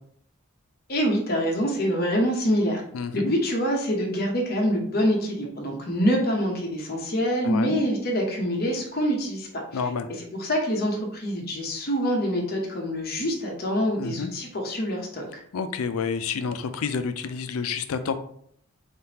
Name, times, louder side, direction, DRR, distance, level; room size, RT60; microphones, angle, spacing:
voice 1, 0.9-2.8 3.1-9.8 10.2-15.4, equal, 45° left, 1 dB, 0.8 m, -25 dB
voice 2, 2.9-3.3 7.4-7.8 9.7-10.1 14.0-14.3 15.5-18.2, left 5 dB, 85° left, 10 dB, 0.4 m, -29 dB
3.9 x 3.5 x 2.8 m, 0.66 s
head